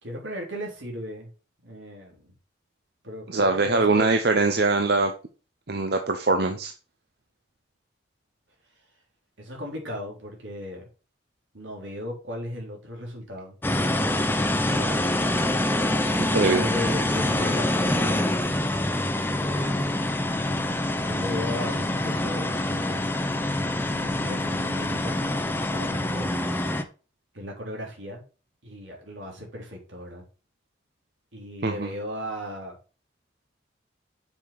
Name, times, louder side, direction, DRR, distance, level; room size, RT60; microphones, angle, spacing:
voice 1, 0.0-1.3 1.6-2.3 3.0-4.2 9.4-10.8 11.5-13.6 14.6-15.0 16.1-18.3 19.3-19.9 21.0-23.0 23.8-26.5 27.3-28.2 28.6-30.2 31.3-32.8, left 1 dB, 80° right, 0 dB, 3.7 m, -36 dB
voice 2, 3.3-5.1 5.7-6.7 16.3-16.6 31.6-31.9, right 3 dB, 55° right, 6 dB, 0.8 m, -22 dB
sound 1, 13.6-26.8, left 1 dB, 10° left, 0.7 m, -25 dB
7.2 x 5.6 x 4.9 m, 0.34 s
head